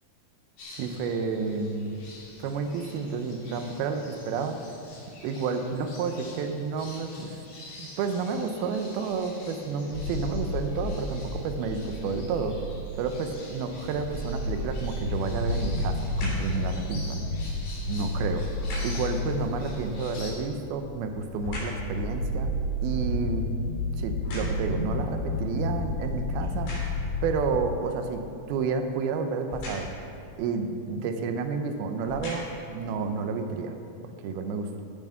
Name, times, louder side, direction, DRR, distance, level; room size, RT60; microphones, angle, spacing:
sound 1, 0.6-20.3, left 2 dB, 65° left, 4.2 m, -47 dB
voice 1, 0.8-1.9 2.4-4.6 5.2-7.3 7.8-12.6 13.0-17.2 17.9-18.4 18.8-22.5 22.8-23.5 24.0-26.7 27.2-28.2 28.5-29.9 30.4-33.7 34.0-34.8, right 5 dB, 80° right, 6 dB, 2.7 m, -30 dB
sound 2, 9.9-27.7, left 1 dB, 45° left, 4.5 m, -31 dB
sound 3, 16.0-16.5 18.5-19.1 20.5-21.9 22.4-24.9 25.5-25.6 26.4-27.1 29.5-30.1 31.1-31.2 31.9-32.7 33.3-33.4, left 1 dB, 85° left, 5.6 m, -39 dB
16.5 x 7.2 x 5.7 m, 2.6 s
omnidirectional pair, 4.4 m